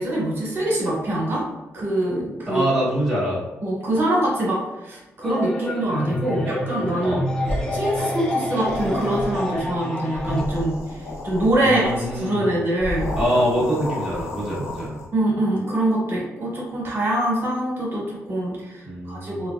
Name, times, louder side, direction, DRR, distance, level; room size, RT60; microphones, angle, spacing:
voice 1, 0.0-1.4 1.7-2.6 3.6-7.2 7.7-13.1 15.1-19.5, right 1 dB, 45° right, -4 dB, 1.1 m, -24 dB
voice 2, 2.5-3.4 7.0-7.2 11.6-12.5 13.2-15.0 18.8-19.5, equal, 5° right, -8 dB, 0.9 m, -24 dB
sound 1, 5.2-10.4, left 1 dB, 10° left, 0.4 m, -28 dB
sound 2, 7.4-9.8 10.1-12.2 12.8-15.1, left 1 dB, 50° left, 0.6 m, -31 dB
3.2 x 2.5 x 2.3 m, 1.0 s
cardioid pair, 130°, 5 cm